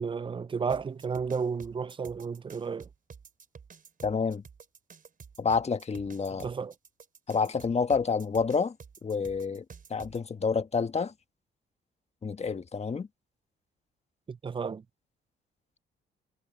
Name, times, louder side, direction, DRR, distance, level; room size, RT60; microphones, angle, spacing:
voice 1, 0.0-2.9 6.4-6.7 14.3-14.8, right 5 dB, 25° right, 0.5 m, -32 dB
sound 1, 0.7-10.2, right 6 dB, 45° right, 5.2 m, -50 dB
voice 2, 4.0-4.4 5.4-6.5 7.3-8.7 9.0-9.6 9.9-11.1 12.2-13.1, left 5 dB, 35° left, 1.5 m, -28 dB
cardioid pair, 90°, 20 cm